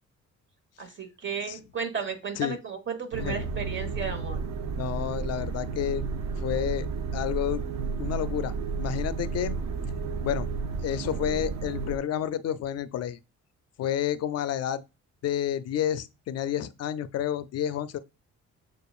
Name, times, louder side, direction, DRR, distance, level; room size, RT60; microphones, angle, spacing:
voice 1, 0.8-4.4, right 5 dB, 40° right, 1.3 m, -34 dB
sound 1, 3.1-12.0, right 4 dB, 60° right, 0.6 m, -32 dB
voice 2, 4.7-6.0 6.4-6.9 7.1-7.6 8.0-8.5 8.8-9.6 10.2-10.5 10.8-13.2 13.8-14.8 15.2-18.0, left 10 dB, 55° left, 0.5 m, -30 dB
6.8 x 2.5 x 2.4 m
cardioid pair, 90°, 30 cm